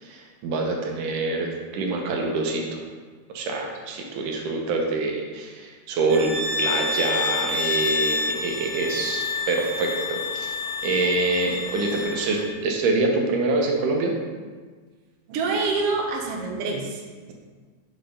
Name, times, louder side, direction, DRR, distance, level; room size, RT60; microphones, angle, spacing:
voice 1, 0.0-2.8 3.3-10.5 10.8-14.1, right 3 dB, 80° right, 1 dB, 2.5 m, -25 dB
sound 1, 6.1-12.5, left 4 dB, ahead, 0.9 m, -28 dB
voice 2, 15.3-17.0, right 3 dB, 65° right, 1 dB, 1.6 m, -26 dB
6.1 x 5.9 x 5.2 m, 1.5 s
omnidirectional pair, 3.6 m